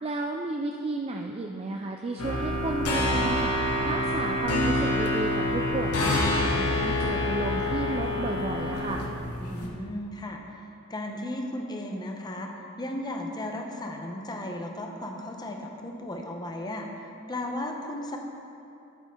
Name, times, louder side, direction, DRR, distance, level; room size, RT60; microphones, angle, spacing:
voice 1, 0.0-9.1, right 3 dB, 25° right, 2 dB, 0.4 m, -33 dB
sound 1, 2.2-9.7, left 1 dB, 90° left, 1.2 m, -27 dB
voice 2, 9.4-12.5 12.8-16.9 17.3-18.2, left 1 dB, 20° left, 2 dB, 0.8 m, -35 dB
12.5 x 8.1 x 3.7 m, 2.8 s
head